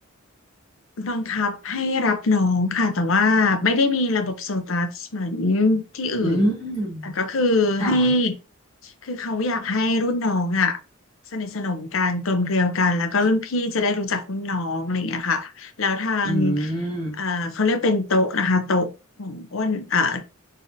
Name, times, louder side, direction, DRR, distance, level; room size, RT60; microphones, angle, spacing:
voice 1, 1.0-6.5 7.0-8.3 8.8-10.8 11.3-16.7 17.2-18.9 19.2-20.2, left 3 dB, 65° left, 0.7 m, -23 dB
voice 2, 6.2-7.1 7.8-8.1 16.2-17.2, right 1 dB, 20° left, 2.0 m, -25 dB
4.2 x 3.5 x 2.6 m
head